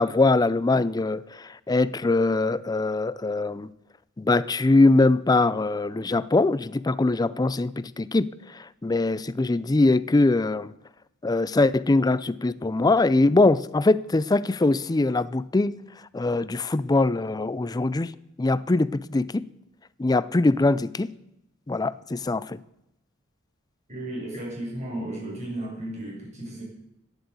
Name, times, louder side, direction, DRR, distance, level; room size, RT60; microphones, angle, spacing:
voice 1, 0.0-3.7 4.2-10.7 11.2-15.8 16.1-18.1 18.4-19.5 20.0-21.1 21.7-22.6, left 2 dB, 20° left, 0.4 m, -22 dB
voice 2, 23.9-26.6, right 1 dB, 35° right, 7.3 m, -34 dB
12.0 x 10.0 x 8.2 m
head